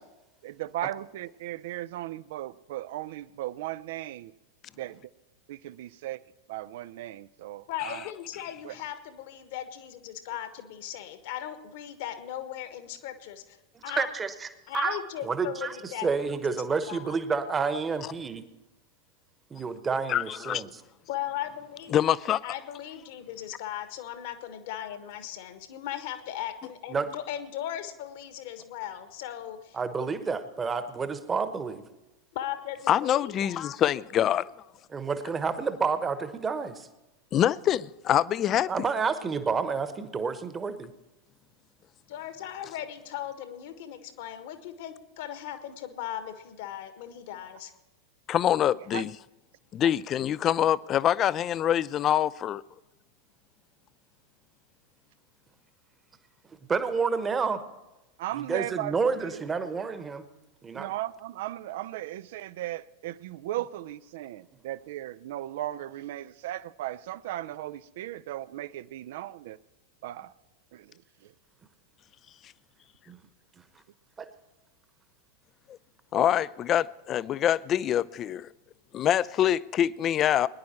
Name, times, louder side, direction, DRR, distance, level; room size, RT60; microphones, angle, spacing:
voice 1, 0.4-4.4 4.8-5.0 5.5-6.2 6.5-8.0 8.6-8.7 48.9-49.0 58.2-59.0 59.4-59.5 60.7-69.6 70.0-70.3 70.7-71.3, right 14 dB, 55° right, 0.4 m, -36 dB
voice 2, 7.7-13.6 13.8-14.1 14.7-16.4 16.9-17.1 21.1-22.0 22.4-30.1 32.3-33.6 42.1-47.7, left 11 dB, 50° left, 1.4 m, -38 dB
voice 3, 14.0-14.5 14.7-15.0 15.2-18.4 19.5-20.8 26.9-27.1 29.7-31.8 34.9-36.9 38.7-40.9 56.7-57.6 58.4-60.2 60.6-60.9 73.1-73.2 74.2-74.3, right 5 dB, 20° right, 1.1 m, -29 dB
voice 4, 20.1-20.6 21.9-22.4 32.9-34.5 37.3-38.7 48.3-49.1 49.7-52.6 76.1-78.5 78.9-80.5, left 11 dB, 30° left, 0.4 m, -25 dB
22.0 x 10.5 x 4.4 m
figure-of-eight pair, 90°, 0 cm